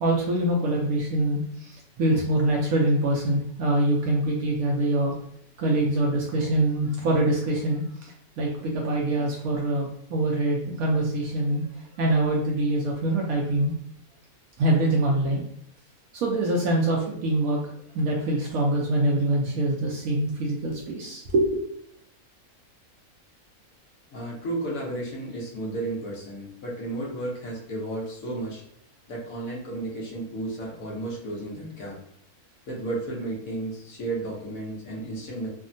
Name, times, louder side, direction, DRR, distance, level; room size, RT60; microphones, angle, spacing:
voice 1, 0.0-5.1 5.6-11.6 12.0-13.7 14.6-15.4 16.1-17.6 17.9-21.5, right 1 dB, 75° right, -2 dB, 1.0 m, -24 dB
voice 2, 24.1-28.6 29.1-32.0 32.7-35.5, right 2 dB, 70° left, -3 dB, 1.3 m, -33 dB
3.4 x 2.1 x 2.5 m, 0.72 s
omnidirectional pair, 1.5 m